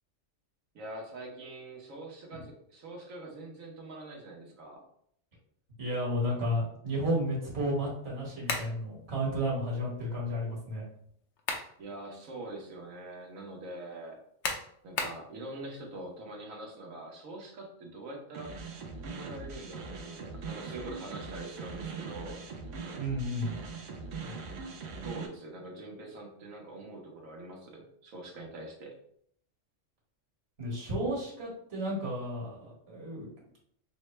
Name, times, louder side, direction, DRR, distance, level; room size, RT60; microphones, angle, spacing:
voice 1, 0.7-4.8 11.8-14.2 14.8-18.5 19.0-22.4 25.0-28.9, right 2 dB, 90° right, 0 dB, 1.4 m, -44 dB
voice 2, 5.8-10.8 23.0-23.6 24.1-24.4 30.6-33.3, equal, 55° right, -4 dB, 1.9 m, -32 dB
sound 1, 8.5-8.8 11.1-11.8 12.2-12.3 14.4-15.3, left 4 dB, 65° left, 0.9 m, -33 dB
sound 2, 18.3-25.3, right 4 dB, 70° right, 1.0 m, -41 dB
6.0 x 2.2 x 3.1 m, 0.67 s
omnidirectional pair, 1.3 m